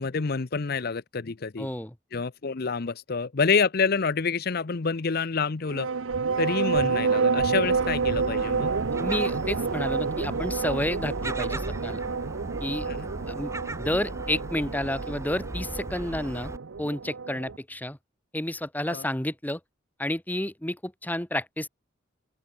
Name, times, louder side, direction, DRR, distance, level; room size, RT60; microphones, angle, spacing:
voice 1, 0.0-1.7 2.1-5.9 6.4-8.7 12.9-13.1 18.9-19.1, left 5 dB, 50° left, 0.7 m, -27 dB
voice 2, 1.6-1.9 8.9-12.0 12.6-12.9 13.3-13.5 13.8-16.5 16.8-18.0 18.3-19.6 20.0-21.7, left 1 dB, 10° left, 1.5 m, -30 dB
sound 1, 5.7-17.6, right 5 dB, 80° right, 0.7 m, -29 dB
Gull seagull, 7.6-16.6, right 1 dB, 15° right, 1.6 m, -38 dB
open air
head